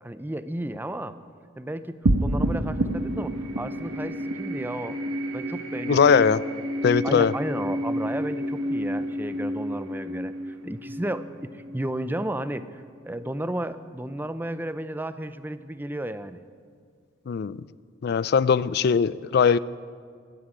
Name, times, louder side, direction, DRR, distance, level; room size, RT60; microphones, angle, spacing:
voice 1, 0.0-1.2 1.6-5.0 5.3-6.3 7.0-16.4, right 1 dB, 10° right, 13 dB, 0.5 m, -33 dB
sound 1, 2.0-12.7, right 1 dB, 85° right, 1.2 m, -29 dB
voice 2, 5.9-6.4 6.8-7.3 17.3-17.6 18.0-19.6, left 6 dB, 55° left, 19 dB, 0.4 m, -20 dB
14.0 x 9.7 x 9.7 m, 2.1 s
head